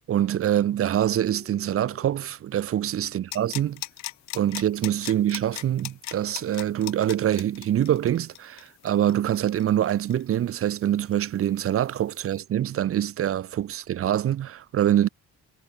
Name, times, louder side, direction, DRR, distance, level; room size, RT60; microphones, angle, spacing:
voice 1, 0.1-3.8 4.3-15.1, right 11 dB, 50° right, 0.6 m, -25 dB
sound 1, 1.1-11.4, left 5 dB, 40° left, 7.2 m, -60 dB
sound 2, 3.3-10.8 11.1-11.2, left 17 dB, 70° left, 0.5 m, -38 dB
cardioid pair, 90°, 30 cm